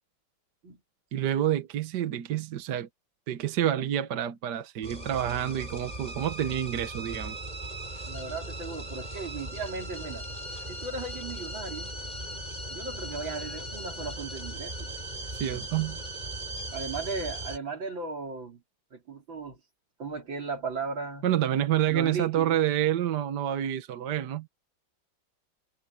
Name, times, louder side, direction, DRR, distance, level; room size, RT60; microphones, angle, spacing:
voice 1, 1.1-2.9 3.3-7.4 15.3-16.0 21.2-24.5, right 11 dB, 65° right, 1.6 m, -28 dB
sound 1, 4.8-17.6, right 1 dB, 20° right, 5.2 m, -38 dB
voice 2, 8.1-10.2 10.6-11.9 12.7-14.9 16.7-18.6 18.9-19.6 20.0-21.3 21.9-22.6, right 4 dB, 90° right, 4.5 m, -36 dB
omnidirectional pair, 2.0 m